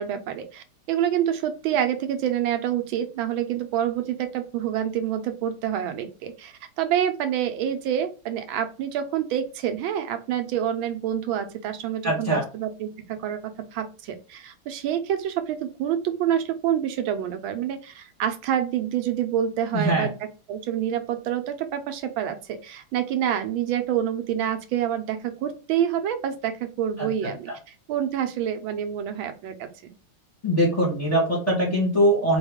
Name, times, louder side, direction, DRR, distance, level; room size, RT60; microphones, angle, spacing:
voice 1, 0.0-13.4 13.7-20.1 20.5-27.5 27.9-29.7, right 10 dB, 80° right, 8 dB, 1.4 m, -27 dB
voice 2, 12.0-12.4 19.7-20.1 27.0-27.1 30.4-32.4, right 1 dB, 25° left, -2 dB, 0.8 m, -22 dB
4.5 x 2.3 x 3.5 m, 0.33 s
omnidirectional pair, 2.2 m